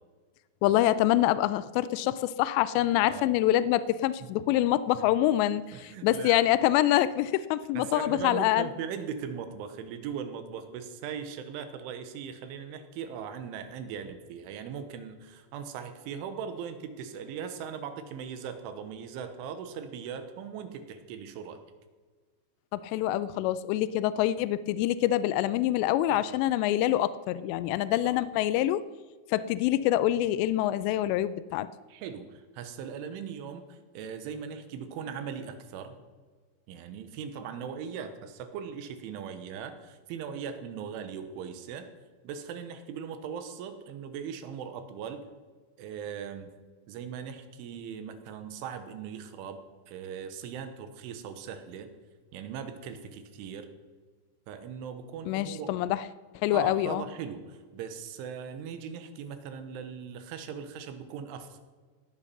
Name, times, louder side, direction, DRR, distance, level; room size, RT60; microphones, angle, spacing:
voice 1, 0.6-8.7 22.7-28.8 29.3-31.7 55.3-56.1 56.4-57.0, left 13 dB, 90° left, 15 dB, 2.5 m, -26 dB
voice 2, 5.7-6.4 7.8-21.6 26.1-26.2 28.0-28.2 31.9-36.0 36.7-41.9 42.2-45.2 45.8-46.5 46.9-49.6 49.9-51.9 52.3-53.7 54.5-55.7 56.5-61.6, right 7 dB, 85° right, 9 dB, 3.5 m, -39 dB
17.5 x 9.0 x 6.0 m, 1.5 s
omnidirectional pair, 5.6 m